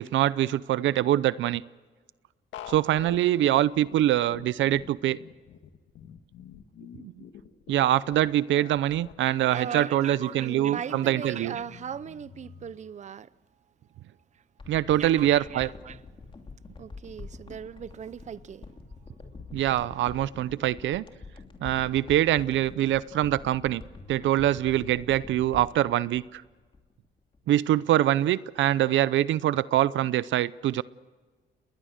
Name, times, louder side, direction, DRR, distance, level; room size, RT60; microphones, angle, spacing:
voice 1, 0.0-1.6 2.7-5.2 7.0-7.1 7.7-11.5 14.7-15.7 19.5-21.0 21.6-23.8 24.1-26.4 27.5-30.8, right 13 dB, 80° right, 0.6 m, -24 dB
sound 1, 2.5-12.7, left 9 dB, 80° left, 1.7 m, -47 dB
voice 2, 9.2-13.3 15.0-16.0 16.8-18.7, right 8 dB, 40° right, 0.6 m, -38 dB
sound 2, 14.6-27.1 27.3-27.4, left 3 dB, 25° left, 2.8 m, -46 dB
29.5 x 21.0 x 6.6 m
cardioid pair, 120°, 19 cm